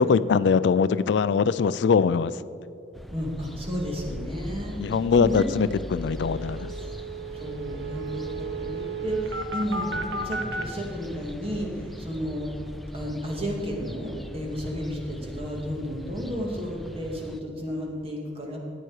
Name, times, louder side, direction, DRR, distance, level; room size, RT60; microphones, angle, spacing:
voice 1, 0.0-2.3 4.8-6.7, left 5 dB, 70° left, 16 dB, 0.3 m, -22 dB
sound 1, 2.9-17.4, equal, ahead, 0.4 m, -40 dB
voice 2, 3.1-4.7 5.1-5.5 6.7-6.9 7.3-12.5 12.9-18.6, equal, 35° right, -1 dB, 2.0 m, -32 dB
sound 2, 5.4-5.5 5.7-5.8 6.0-10.6, right 3 dB, 85° right, 1.0 m, -34 dB
14.0 x 9.1 x 4.8 m, 2.5 s
head